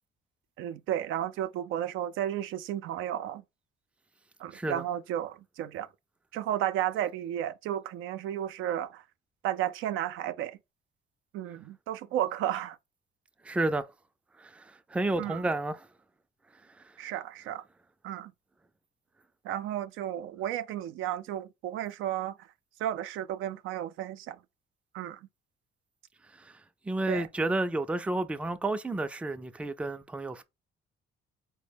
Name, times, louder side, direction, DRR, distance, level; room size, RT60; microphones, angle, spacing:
voice 1, 0.6-3.4 4.4-5.9 6.3-9.0 9.4-10.6 11.3-12.8 15.2-15.5 17.0-17.6 18.0-18.3 19.4-22.3 22.8-24.4 24.9-25.2 27.1-27.3, right 11 dB, 85° right, 0.4 m, -33 dB
voice 2, 4.5-4.8 13.4-13.9 14.4-15.9 16.8-16.9 26.3-26.6 26.8-30.4, right 2 dB, 5° right, 0.3 m, -31 dB
4.1 x 2.1 x 3.4 m
cardioid pair, 90°, 20 cm